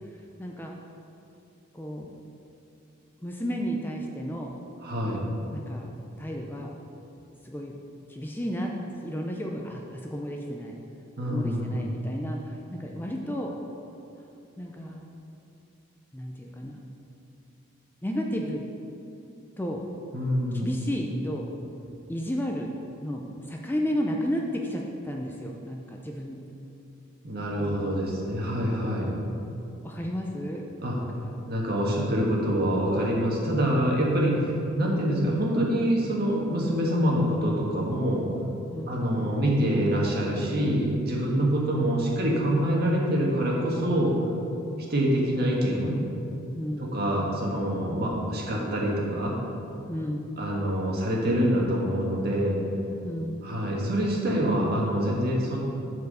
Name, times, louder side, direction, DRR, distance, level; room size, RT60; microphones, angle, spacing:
voice 1, 0.4-0.7 1.7-2.1 3.2-4.5 5.5-5.9 6.2-6.7 7.4-7.8 8.1-8.8 9.0-10.7 11.3-13.5 14.6-15.1 16.1-16.8 18.0-18.6 19.6-19.8 20.5-21.5 22.1-22.7 23.0-26.4 27.6-28.0 29.8-31.3 38.7-39.0 41.4-41.7 44.7-44.9 46.5-46.9 47.9-48.1 49.9-50.3 53.0-53.4, equal, 10° left, 0 dB, 0.5 m, -33 dB
voice 2, 4.8-5.2 11.2-11.8 20.1-20.6 27.2-29.1 30.8-31.0 31.5-34.4 34.7-38.2 38.9-44.1 44.9-45.9 46.8-49.3 50.4-52.6 53.4-55.6, equal, 50° right, -3 dB, 1.6 m, -25 dB
8.1 x 4.8 x 6.6 m, 2.7 s
head